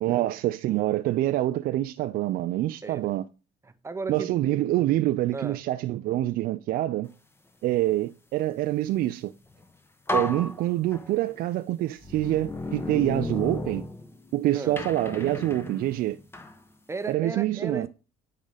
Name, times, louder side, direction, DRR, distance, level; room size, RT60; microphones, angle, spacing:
voice 1, 0.0-3.2 4.1-7.1 7.6-9.3 10.1-13.8 14.3-16.2 17.1-17.9, right 15 dB, 60° right, 0.4 m, -26 dB
voice 2, 3.6-4.4 5.3-5.6 14.5-14.8 16.9-17.9, right 3 dB, 15° right, 0.7 m, -35 dB
sound 1, 9.5-9.6 10.1-11.4 12.0-14.3 14.8-16.6, left 1 dB, 15° left, 0.9 m, -33 dB
9.5 x 3.7 x 3.4 m
supercardioid pair, 90°, 17 cm